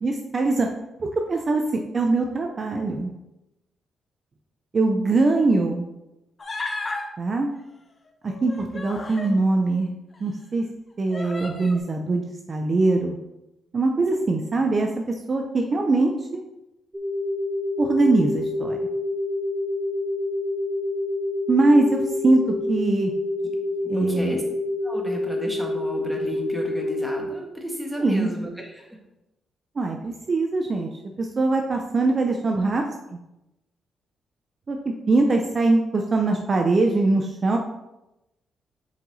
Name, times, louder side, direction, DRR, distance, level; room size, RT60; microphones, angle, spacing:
voice 1, 0.0-0.7 1.0-3.1 4.7-5.8 7.2-7.5 8.2-9.9 10.2-10.6 11.0-13.2 13.7-14.9 15.3-16.4 17.8-18.8 21.5-22.4 22.7-23.1 23.9-24.4 28.0-28.3 29.8-30.9 31.2-33.2 34.7-34.8 35.1-37.6, right 3 dB, 40° right, 2 dB, 0.7 m, -22 dB
Human voice, 6.4-7.1 8.2-9.3 10.1-10.2 11.1-11.8, left 2 dB, 35° left, 1.1 m, -33 dB
sound 1, 16.9-27.2, left 2 dB, 20° right, 1.1 m, -27 dB
voice 2, 23.8-24.4 24.8-29.0, equal, ahead, 0 dB, 1.7 m, -33 dB
7.0 x 4.7 x 4.1 m, 0.92 s
cardioid pair, 90°, 0 cm